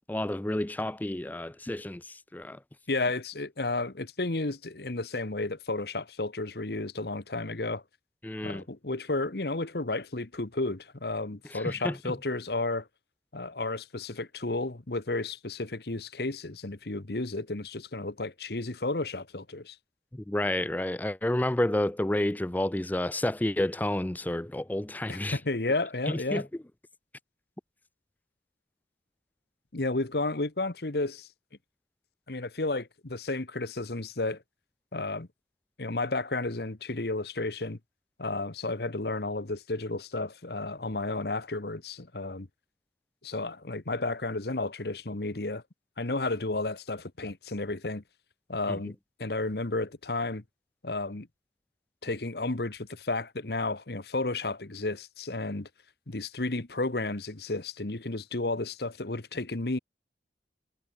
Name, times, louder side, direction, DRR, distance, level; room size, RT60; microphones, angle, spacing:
voice 1, 0.1-2.6 8.2-8.6 11.5-12.2 20.1-25.4 26.1-26.5 48.7-48.8, left 1 dB, 10° left, 0.4 m, -30 dB
voice 2, 2.9-7.8 8.4-12.9 13.3-19.8 25.1-26.4 29.7-31.3 32.3-34.4 34.9-35.3 35.8-37.8 38.2-42.5 43.2-45.6 46.0-48.0 48.5-50.4 50.8-51.3 52.0-55.7 56.1-59.8, left 2 dB, 65° left, 1.3 m, -32 dB
head